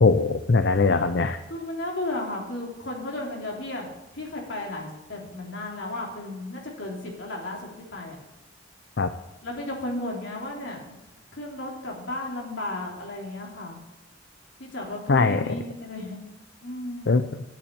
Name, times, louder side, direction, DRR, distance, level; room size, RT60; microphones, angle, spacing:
voice 1, 0.0-1.4 9.0-9.1 15.1-15.4 17.1-17.2, left 4 dB, 65° left, 9 dB, 0.6 m, -20 dB
voice 2, 1.5-8.2 9.4-11.0 11.4-13.8 14.6-16.2 16.6-17.2, left 1 dB, 80° left, -1 dB, 3.5 m, -34 dB
9.9 x 8.7 x 8.6 m, 1.0 s
head